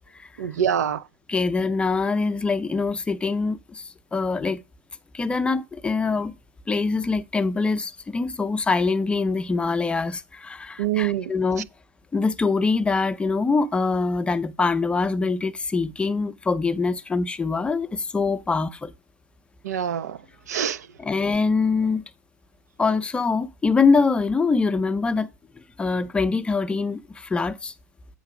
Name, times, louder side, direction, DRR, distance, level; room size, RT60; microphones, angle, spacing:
voice 1, 0.4-1.0 10.8-11.3 19.6-20.2 20.5-20.9, right 9 dB, 70° right, 0.5 m, -25 dB
voice 2, 1.3-4.6 5.1-6.3 6.7-11.7 12.1-18.9 21.0-22.0 22.8-25.3 25.8-27.7, left 4 dB, 10° left, 0.6 m, -24 dB
8.1 x 3.9 x 6.0 m
hypercardioid pair, 100°, 9 cm